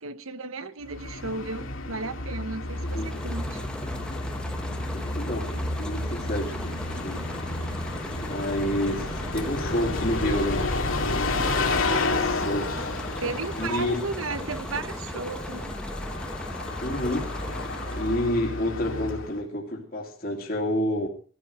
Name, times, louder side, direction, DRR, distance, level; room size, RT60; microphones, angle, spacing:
voice 1, 0.0-3.6 13.2-15.7, right 3 dB, 75° right, 1.1 m, -34 dB
Bus, 0.8-19.4, left 2 dB, 70° left, 2.5 m, -31 dB
sound 1, 2.6-18.4, equal, 5° left, 1.0 m, -37 dB
voice 2, 5.1-7.2 8.2-10.7 12.0-12.9 13.6-14.0 16.8-17.3 18.0-21.1, left 1 dB, 45° left, 2.7 m, -29 dB
17.0 x 14.0 x 4.9 m
head